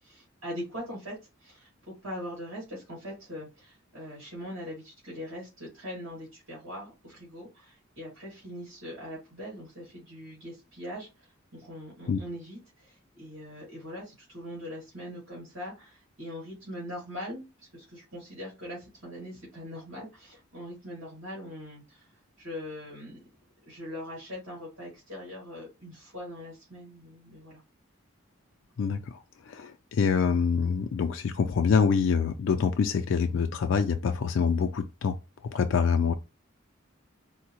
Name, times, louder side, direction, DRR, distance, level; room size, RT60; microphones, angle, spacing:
voice 1, 0.0-23.2 23.7-27.6, equal, 70° right, 2.0 m, -41 dB
voice 2, 28.8-35.2 35.5-36.1, left 6 dB, 70° left, 0.3 m, -26 dB
4.5 x 2.0 x 2.9 m
head